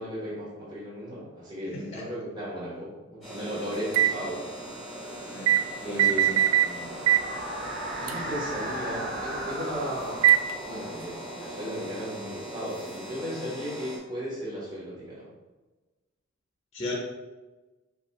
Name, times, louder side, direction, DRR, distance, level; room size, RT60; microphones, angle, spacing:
voice 1, 0.0-4.4 5.8-7.0 8.0-10.2 10.6-15.3, equal, 20° right, -9 dB, 1.4 m, -36 dB
voice 2, 1.7-2.0 5.3-6.4 16.7-17.0, left 2 dB, 30° left, -1 dB, 0.6 m, -37 dB
sound 1, 3.2-14.0, equal, ahead, 1.3 m, -40 dB
sound 2, 3.9-4.2 5.5-5.6 6.0-6.7 7.1-7.3 8.1-8.2 10.2-10.5, right 11 dB, 70° right, 0.3 m, -20 dB
sound 3, 4.1-12.7, right 1 dB, 45° right, 0.7 m, -38 dB
5.3 x 2.4 x 4.2 m, 1.2 s
head